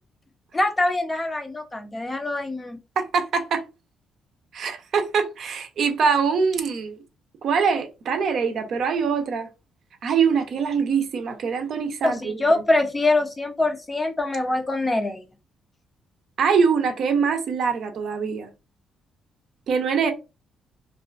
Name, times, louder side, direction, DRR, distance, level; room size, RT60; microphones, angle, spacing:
voice 1, 0.5-2.8 12.0-15.2, left 2 dB, 20° left, 0.5 m, -24 dB
voice 2, 3.0-3.6 4.5-7.0 7.4-9.5 10.0-12.3 16.4-18.5 19.7-20.1, right 6 dB, 65° right, 0.5 m, -23 dB
2.4 x 2.3 x 2.4 m
cardioid pair, 90°, 0 cm